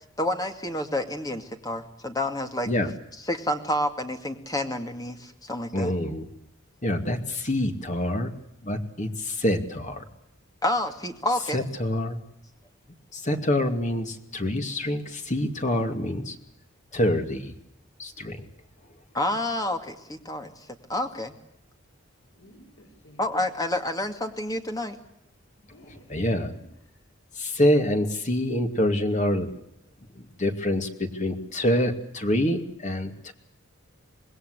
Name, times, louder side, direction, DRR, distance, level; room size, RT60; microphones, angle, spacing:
voice 1, 0.2-2.7 3.3-5.9 10.6-11.6 19.1-20.5 20.9-21.3 23.2-25.0, left 1 dB, 20° left, 5 dB, 2.4 m, -29 dB
voice 2, 5.7-6.3 6.8-8.3 8.6-10.0 11.5-12.2 13.1-16.4 16.9-17.5 18.0-18.5 26.1-26.5 27.3-29.5 30.2-33.3, left 1 dB, 35° left, 5 dB, 2.6 m, -26 dB
voice 3, 22.3-23.4 25.6-26.3 26.7-26.9, equal, 75° left, 0 dB, 6.7 m, -53 dB
26.0 x 20.5 x 8.2 m, 0.79 s
head